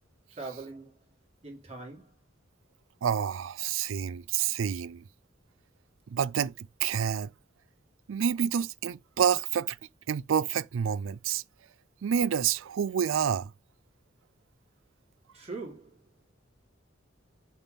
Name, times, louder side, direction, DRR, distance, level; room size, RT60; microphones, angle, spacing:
voice 1, 0.3-1.0 1.4-2.1 15.3-16.0, right 3 dB, 35° right, 2.6 m, -41 dB
voice 2, 3.0-5.0 6.1-7.3 8.1-9.8 10.1-11.4 12.0-13.5, right 8 dB, 80° right, 0.4 m, -28 dB
7.2 x 3.6 x 5.3 m
head